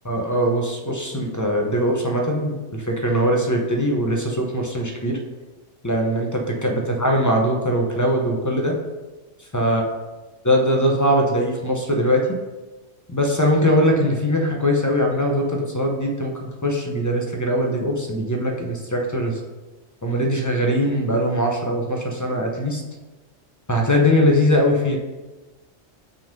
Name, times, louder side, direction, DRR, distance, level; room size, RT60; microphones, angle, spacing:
voice 1, 0.0-5.2 5.8-8.7 9.5-9.8 10.4-12.2 13.1-19.4 20.0-22.8 23.7-25.0, equal, 20° left, 1 dB, 0.6 m, -21 dB
5.8 x 3.7 x 5.2 m, 1.2 s
omnidirectional pair, 1.4 m